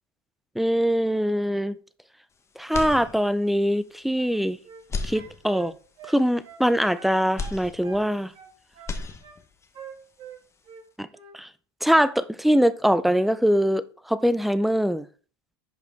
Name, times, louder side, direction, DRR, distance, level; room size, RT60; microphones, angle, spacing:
voice 1, 0.6-1.8 2.6-4.6 5.0-5.7 6.1-8.3 11.0-11.1 11.3-11.5 11.8-15.1, equal, ahead, 0.5 m, -23 dB
sound 1, 2.7-3.6 4.1-4.2 4.8-5.9 7.4-8.5 8.7-9.7, left 4 dB, 20° left, 1.2 m, -35 dB
sound 2, 4.1-4.9 5.1-6.7 6.9-8.1 8.3-9.4 9.7-10.9 11.1-11.4, right 7 dB, 40° right, 2.0 m, -45 dB
10.5 x 5.0 x 3.5 m
hypercardioid pair, 100°, 14 cm